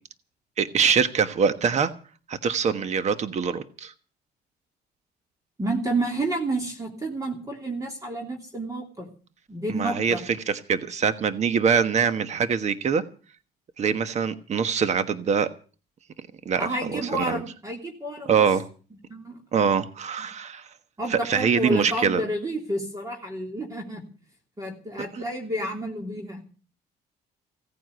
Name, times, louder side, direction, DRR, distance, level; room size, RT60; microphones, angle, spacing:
voice 1, 0.6-1.9 2.3-3.9 9.7-13.0 13.8-15.5 16.4-17.4 18.3-18.6 19.5-20.7 21.1-22.2, right 6 dB, 40° right, 1.3 m, -24 dB
voice 2, 5.6-9.1 9.5-10.2 16.6-18.4 19.1-19.7 21.0-24.0 24.6-26.4, right 1 dB, 20° right, 3.1 m, -30 dB
16.5 x 9.4 x 8.0 m
cardioid pair, 110°, 17 cm